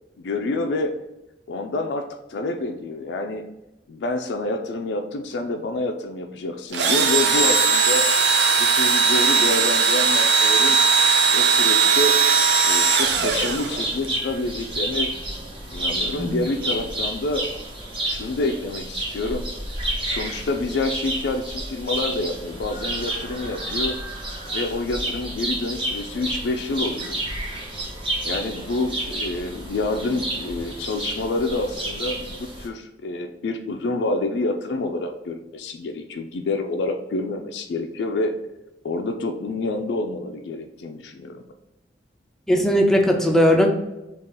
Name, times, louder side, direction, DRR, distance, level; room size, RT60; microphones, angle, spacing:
voice 1, 0.2-0.9 1.5-3.4 3.9-8.0 8.6-10.8 11.3-12.1 12.6-15.1 15.7-17.4 18.0-19.4 20.0-24.0 24.5-27.2 28.2-38.3 38.8-41.4, left 2 dB, 75° left, 5 dB, 0.3 m, -27 dB
Engine / Drill, 6.7-14.1, right 5 dB, 70° right, 0.5 m, -18 dB
sound 1, 13.0-32.7, right 1 dB, 30° right, 0.8 m, -30 dB
voice 2, 42.5-43.7, equal, 5° left, 2 dB, 0.4 m, -18 dB
3.6 x 2.3 x 3.9 m, 0.96 s
head